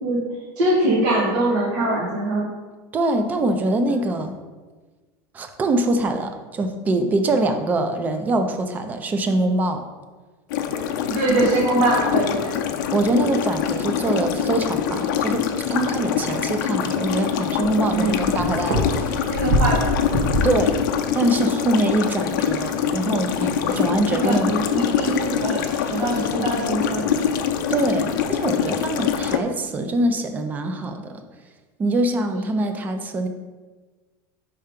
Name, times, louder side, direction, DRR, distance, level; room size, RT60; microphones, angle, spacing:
voice 1, 0.6-2.5 10.7-12.6 17.9-18.2 19.3-19.9 24.1-27.4, right 2 dB, 85° right, -6 dB, 1.5 m, -23 dB
voice 2, 2.9-4.4 5.3-9.8 12.9-19.6 20.4-20.8 21.1-24.5 27.7-31.2 31.8-33.3, right 2 dB, 15° right, 7 dB, 0.4 m, -23 dB
sound 1, 10.5-29.4, left 8 dB, 80° left, 0.5 m, -24 dB
sound 2, 13.6-28.9, equal, 65° right, 1.4 m, -31 dB
5.5 x 3.4 x 5.1 m, 1.3 s
supercardioid pair, 165°, 10 cm